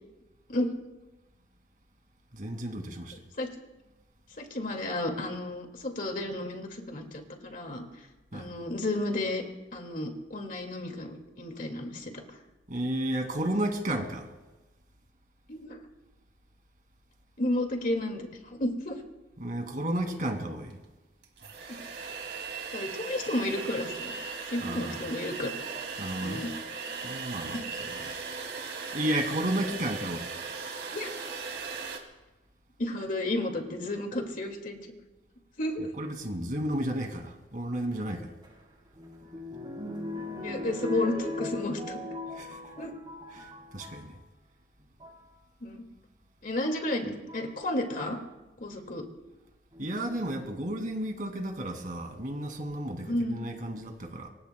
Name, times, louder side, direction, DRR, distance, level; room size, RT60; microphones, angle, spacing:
voice 1, 2.3-3.2 8.3-8.6 12.7-14.3 19.4-20.8 24.6-25.0 26.0-26.5 27.0-28.2 28.9-30.3 35.8-38.3 42.3-42.6 43.3-44.2 49.8-54.3, right 1 dB, 45° right, 2.4 m, -33 dB
voice 2, 4.4-7.8 8.3-9.4 9.7-12.1 15.5-15.8 17.4-19.0 21.7-21.8 22.7-24.1 24.5-25.5 26.2-26.5 27.5-27.6 30.9-31.1 32.8-34.9 35.6-35.9 40.4-42.0 42.8-42.9 45.6-45.8 46.4-48.2 48.6-49.0 53.1-53.5, left 1 dB, 50° left, 2.1 m, -32 dB
sound 1, 20.7-20.8 21.2-32.0, right 5 dB, 65° right, 2.6 m, -38 dB
sound 2, 38.4-44.1 44.8-45.2 46.5-46.6 47.3-47.6 49.7-50.4 51.0-51.1 51.3-51.4, left 2 dB, 25° right, 3.6 m, -39 dB
26.5 x 23.5 x 2.3 m
head